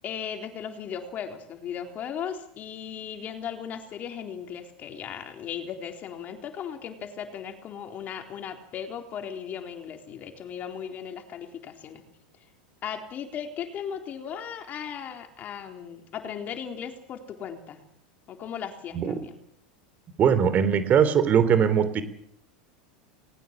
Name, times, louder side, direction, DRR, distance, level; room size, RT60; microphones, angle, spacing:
voice 1, 0.0-12.0 12.8-17.8 18.3-19.4, left 8 dB, 40° left, 5 dB, 3.8 m, -37 dB
voice 2, 20.2-22.0, right 7 dB, 35° right, 12 dB, 3.6 m, -21 dB
20.0 x 19.5 x 7.5 m, 0.71 s
hypercardioid pair, 110°, 5 cm